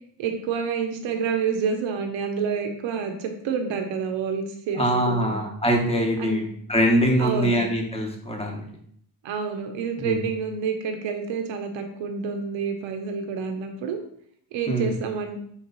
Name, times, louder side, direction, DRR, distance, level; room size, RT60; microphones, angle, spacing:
voice 1, 0.2-5.3 6.2-6.5 7.2-7.6 9.2-14.0 14.5-15.4, right 6 dB, 85° right, 5 dB, 0.7 m, -28 dB
voice 2, 4.7-6.4 6.7-8.6 10.0-10.2 14.7-14.9, equal, 15° left, 1 dB, 0.9 m, -23 dB
4.5 x 3.0 x 3.9 m, 0.67 s
cardioid pair, 115°, 45 cm